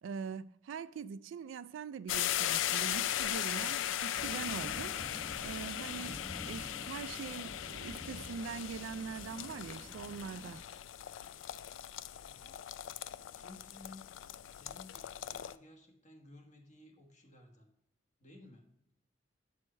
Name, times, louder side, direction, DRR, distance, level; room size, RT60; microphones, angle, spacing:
voice 1, 0.0-5.0 5.4-6.2 6.5-10.6, right 6 dB, 75° right, 0.3 m, -43 dB
sound 1, 2.1-15.5, left 11 dB, 75° left, 0.3 m, -38 dB
sound 2, 4.1-10.6, equal, 25° left, 0.9 m, -49 dB
voice 2, 12.2-12.6 13.3-14.1 14.4-17.7 18.2-18.6, left 2 dB, 40° left, 1.4 m, -56 dB
8.6 x 4.6 x 4.4 m
head